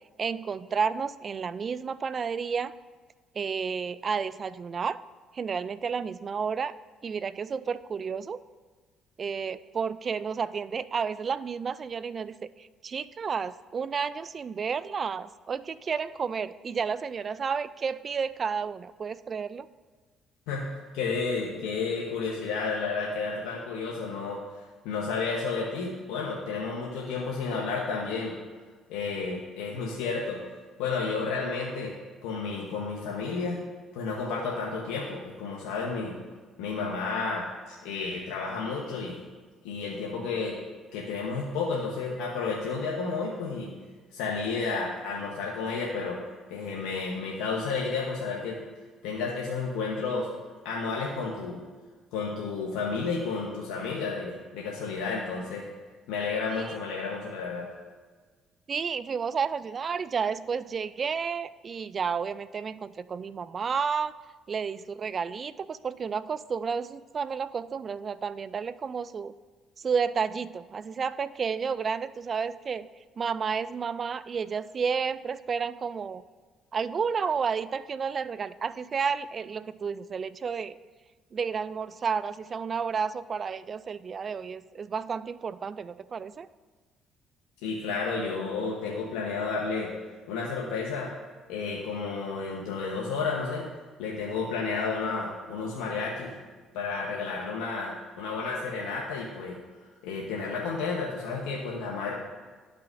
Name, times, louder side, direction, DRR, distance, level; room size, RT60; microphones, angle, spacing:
voice 1, 0.2-2.7 3.4-5.0 5.3-6.7 7.0-8.4 9.2-19.7 56.6-56.7 58.7-64.1 64.5-69.3 69.8-72.9 73.2-76.2 76.7-80.8 81.3-86.5, right 6 dB, 45° right, 16 dB, 0.3 m, -31 dB
voice 2, 20.5-24.4 24.8-28.3 28.9-30.4 30.8-31.9 32.2-33.6 33.9-36.1 36.6-39.2 39.6-40.6 40.9-43.7 44.1-46.2 46.5-48.6 49.0-50.3 50.6-51.6 52.1-55.6 56.1-57.7 87.6-89.9 90.3-91.1 91.5-93.7 94.0-96.3 96.7-99.6 100.0-102.1, left 4 dB, 80° left, -3 dB, 1.0 m, -31 dB
12.0 x 5.7 x 2.6 m, 1.4 s
supercardioid pair, 65°, 0 cm